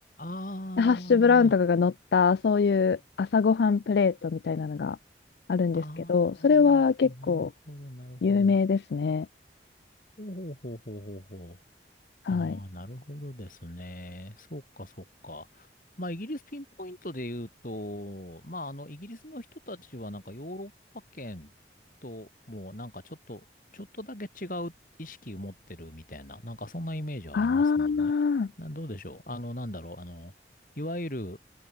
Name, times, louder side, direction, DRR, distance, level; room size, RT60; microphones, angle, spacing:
voice 1, 0.2-1.5 5.7-8.6 10.2-11.6 12.3-15.7 16.0-20.7 21.1-21.5 22.0-23.4 23.7-24.7 25.0-28.1 28.6-30.3 30.8-31.4, left 1 dB, 50° left, 5.3 m, -39 dB
voice 2, 0.8-5.0 5.5-5.8 6.1-7.5 8.2-9.3 12.3-12.6 27.3-28.5, left 5 dB, 70° left, 0.4 m, -23 dB
head